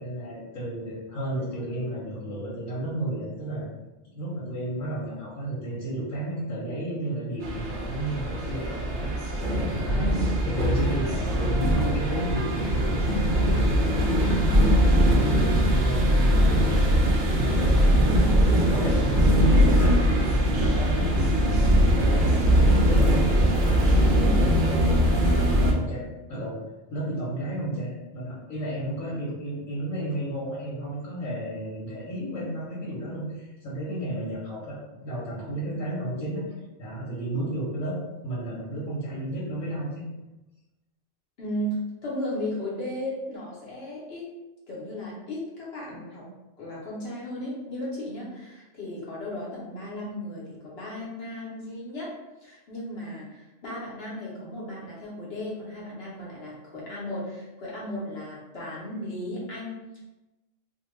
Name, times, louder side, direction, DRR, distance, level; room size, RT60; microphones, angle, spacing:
voice 1, 0.0-3.7 4.1-9.1 9.7-10.1 10.4-13.5 14.2-14.6 15.0-16.9 17.3-23.2 23.6-26.0 26.3-26.6 26.9-36.4 36.8-40.0, right 1 dB, 85° left, -8 dB, 1.2 m, -32 dB
sound 1, 7.4-25.7, equal, 60° right, 0.5 m, -21 dB
voice 2, 9.9-10.2 14.6-14.9 24.2-24.4 29.1-29.2 41.4-44.3 44.7-46.3 46.6-52.1 52.4-60.0, left 1 dB, 55° left, -6 dB, 1.0 m, -35 dB
2.7 x 2.2 x 3.1 m, 1.0 s
omnidirectional pair, 1.4 m